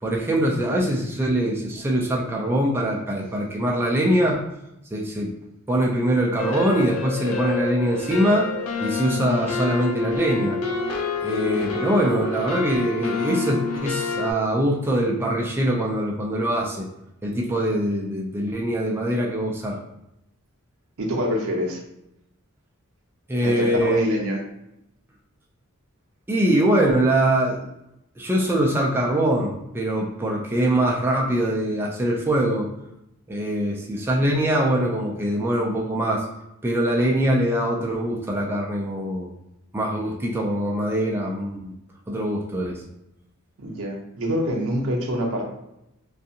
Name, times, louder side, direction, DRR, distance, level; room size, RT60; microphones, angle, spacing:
voice 1, 0.0-4.5 4.9-5.4 5.7-8.5 8.8-10.6 11.2-16.9 17.2-19.8 23.3-24.1 26.3-27.7 28.2-32.7 33.3-36.3 36.6-39.3 39.7-41.7 42.1-42.8, right 1 dB, 10° right, -2 dB, 0.3 m, -23 dB
sound 1, 6.4-14.3, left 4 dB, 70° left, 0.4 m, -28 dB
voice 2, 21.0-21.8 23.4-24.4 43.6-45.4, equal, 70° right, 0 dB, 0.6 m, -25 dB
2.5 x 2.3 x 2.7 m, 0.84 s
head